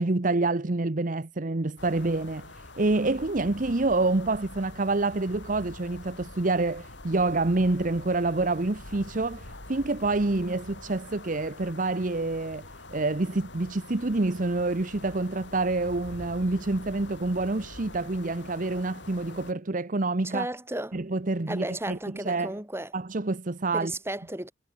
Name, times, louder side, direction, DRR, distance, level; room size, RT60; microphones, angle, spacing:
voice 1, 0.0-2.5 2.8-12.6 12.9-20.5 20.9-22.5 22.9-23.9, right 2 dB, 50° right, 1.0 m, -27 dB
sound 1, 1.8-19.5, left 2 dB, 85° left, 6.5 m, -45 dB
voice 2, 20.2-21.0 21.5-22.9 23.7-24.5, right 1 dB, 15° right, 6.3 m, -34 dB
head